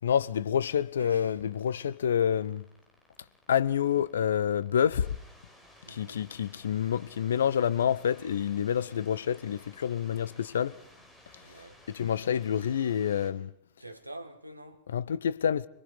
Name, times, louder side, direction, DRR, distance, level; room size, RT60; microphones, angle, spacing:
voice 1, 0.0-2.6 3.5-5.1 5.9-10.7 11.9-13.5 14.9-15.7, left 8 dB, 65° left, 0.7 m, -28 dB
voice 2, 1.0-1.4 5.8-6.3 11.4-11.8 13.8-14.9, right 1 dB, 85° right, 1.6 m, -46 dB
sound 1, 1.4-13.3, left 1 dB, 10° left, 4.7 m, -57 dB
25.0 x 22.5 x 5.1 m
figure-of-eight pair, 90°, 0 cm